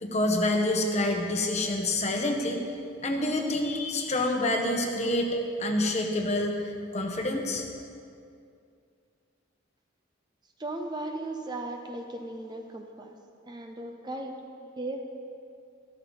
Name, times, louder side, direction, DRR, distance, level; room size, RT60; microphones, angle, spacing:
voice 1, 0.0-2.6 3.0-7.6, left 1 dB, 35° left, 3 dB, 1.2 m, -27 dB
voice 2, 10.6-13.1 13.4-15.0, right 2 dB, 20° right, 3 dB, 0.7 m, -37 dB
13.5 x 13.5 x 4.0 m, 2.4 s
head